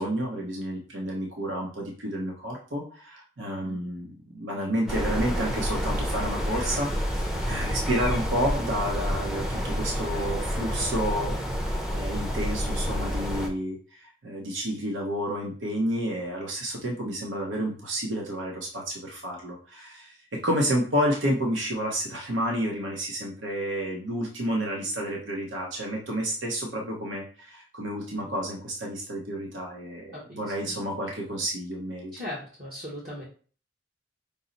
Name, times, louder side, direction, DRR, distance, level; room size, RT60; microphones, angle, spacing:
voice 1, 0.0-11.4 11.7-32.1, equal, 90° right, -1 dB, 0.8 m, -30 dB
wind and windshield test in garden, 4.9-13.5, equal, ahead, 0.5 m, -29 dB
voice 2, 32.1-33.2, left 1 dB, 50° right, -5 dB, 1.0 m, -38 dB
5.4 x 2.0 x 3.9 m, 0.41 s
head